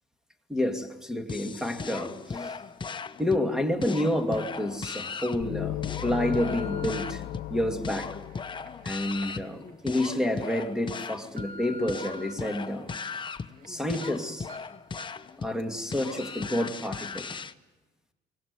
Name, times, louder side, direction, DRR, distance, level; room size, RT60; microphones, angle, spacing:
voice 1, 0.5-2.5 3.2-7.2 7.5-8.2 8.8-12.9 13.7-14.5 15.4-17.3, left 1 dB, 5° right, 5 dB, 2.4 m, -29 dB
sound 1, 1.3-17.5, left 5 dB, 25° left, 0.9 m, -38 dB
sound 2, 3.8-3.9 4.6-4.9 5.5-7.1 7.8-10.1 10.5-10.6 11.0-12.3 12.8-13.7 13.9-14.1 14.5-14.6 15.0-15.2 15.6-15.7, right 1 dB, 50° right, 2.3 m, -46 dB
sound 3, 5.4-9.2, left 14 dB, 90° left, 0.9 m, -36 dB
23.5 x 18.5 x 9.6 m, 1.1 s
cardioid pair, 105°, 18 cm